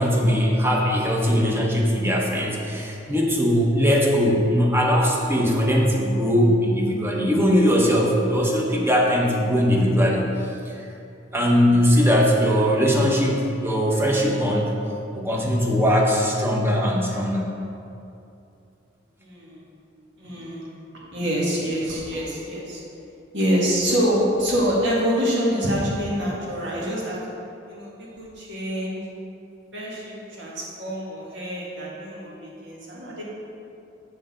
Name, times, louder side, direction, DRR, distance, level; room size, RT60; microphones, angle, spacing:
voice 1, 0.0-10.9 11.3-14.7 15.1-17.5, equal, 10° right, -2 dB, 1.0 m, -20 dB
voice 2, 19.2-19.6 20.2-20.7 21.1-22.8 23.3-27.2 27.7-29.0 29.7-33.2, equal, 65° right, -5 dB, 1.9 m, -26 dB
7.9 x 6.7 x 3.8 m, 2.7 s
head